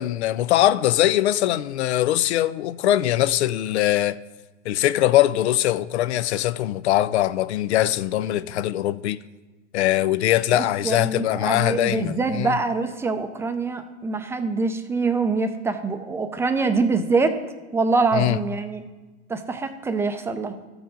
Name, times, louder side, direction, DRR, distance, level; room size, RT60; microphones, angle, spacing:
voice 1, 0.0-4.2 4.7-9.2 9.7-12.6 18.1-18.4, left 13 dB, 65° left, 0.5 m, -22 dB
voice 2, 10.6-17.3 17.7-18.8 19.3-20.6, right 4 dB, 5° right, 0.5 m, -24 dB
13.5 x 4.8 x 3.8 m
hypercardioid pair, 105°, 36 cm